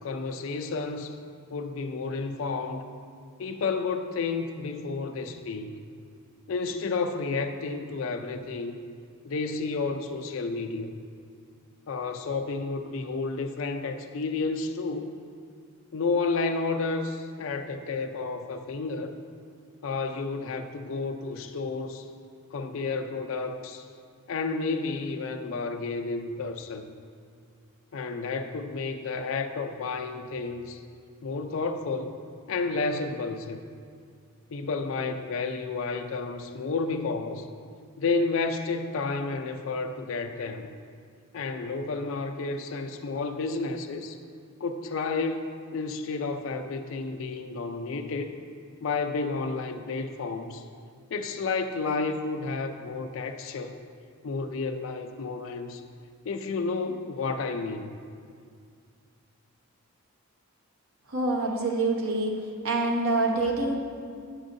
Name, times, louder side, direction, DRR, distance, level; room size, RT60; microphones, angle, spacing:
voice 1, 0.0-1.1 1.5-2.9 3.4-5.7 6.5-8.8 9.2-11.0 11.9-15.1 15.9-19.2 19.8-22.1 22.5-23.9 24.3-26.9 27.9-30.8 31.2-32.1 32.5-33.6 34.5-37.5 38.0-40.7 41.3-44.2 44.6-48.4 48.8-50.6 51.1-53.8 54.2-55.8 56.2-58.0, left 4 dB, 60° left, 6 dB, 0.4 m, -31 dB
voice 2, 61.1-62.4 62.6-63.7, right 2 dB, 65° right, 1 dB, 0.9 m, -26 dB
9.7 x 6.2 x 2.6 m, 2.2 s
head